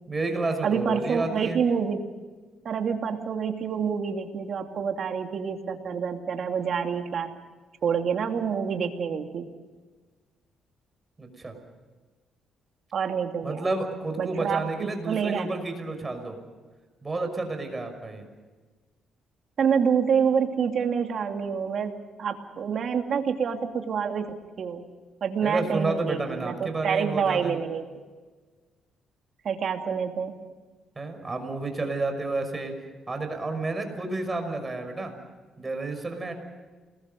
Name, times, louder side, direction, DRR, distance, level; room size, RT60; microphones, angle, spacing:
voice 1, 0.1-1.6 11.2-11.6 13.4-16.4 17.0-18.2 25.4-27.6 31.0-32.7 33.1-35.1 35.6-36.3, right 3 dB, 25° right, 6 dB, 5.9 m, -30 dB
voice 2, 0.6-2.0 2.6-7.3 7.8-9.4 12.9-13.6 14.2-15.6 19.6-21.9 22.2-24.8 25.2-27.8 29.4-30.3, right 6 dB, 60° right, 4 dB, 2.8 m, -27 dB
29.5 x 21.0 x 5.5 m, 1.3 s
cardioid pair, 90°, 0 cm